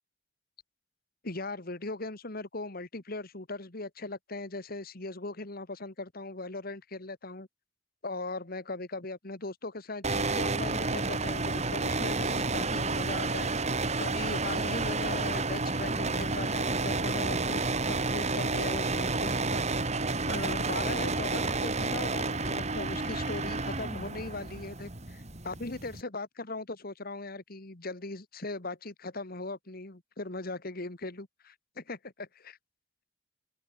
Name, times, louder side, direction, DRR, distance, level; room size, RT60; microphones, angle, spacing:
voice 1, 1.2-7.5 8.0-19.6 20.3-32.6, left 2 dB, 50° left, 2.0 m, -39 dB
sound 1, 10.0-26.0, right 3 dB, 35° right, 3.0 m, -30 dB
head